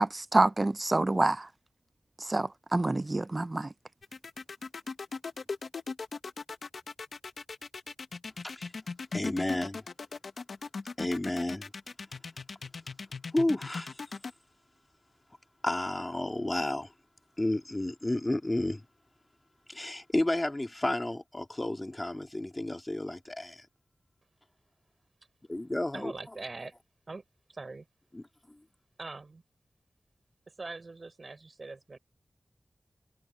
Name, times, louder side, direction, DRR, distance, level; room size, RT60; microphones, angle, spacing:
voice 1, 0.0-1.5 2.2-3.7, right 2 dB, 35° right, 0.4 m, -27 dB
sound 1, 4.0-14.3, left 4 dB, 85° left, 1.0 m, -39 dB
voice 2, 9.1-9.8 11.0-11.7 13.3-14.0 15.6-16.9 17.4-18.9 19.7-23.7 25.5-26.1 28.1-28.6, left 1 dB, 20° left, 2.6 m, -31 dB
voice 3, 25.9-26.7 27.1-27.2 27.5-27.8 29.0-29.4 30.6-32.0, right 3 dB, 50° right, 6.5 m, -42 dB
wide cardioid pair, 90°, 0 cm